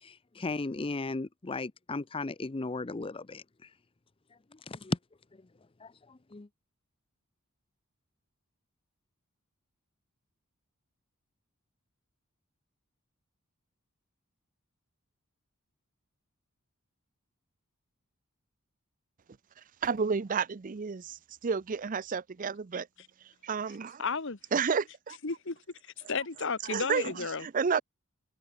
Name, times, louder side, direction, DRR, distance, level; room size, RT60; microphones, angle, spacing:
voice 1, 0.0-3.7 4.5-5.0 5.8-6.5, left 3 dB, 25° left, 0.6 m, -36 dB
voice 2, 19.6-22.9 23.2-24.0 24.5-25.2 26.6-27.8, right 5 dB, 40° right, 0.5 m, -31 dB
voice 3, 24.0-24.4 25.2-25.6 26.1-27.4, left 4 dB, 60° left, 1.4 m, -32 dB
head